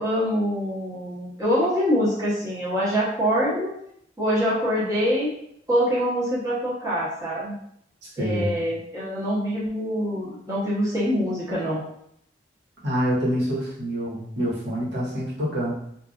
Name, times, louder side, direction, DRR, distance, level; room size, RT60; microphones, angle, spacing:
voice 1, 0.0-3.7 4.2-5.3 5.7-7.6 8.2-11.8, equal, 20° right, -8 dB, 0.9 m, -24 dB
voice 2, 8.0-8.6 12.8-15.8, equal, 75° right, -7 dB, 1.3 m, -26 dB
3.9 x 2.6 x 2.4 m, 0.71 s
head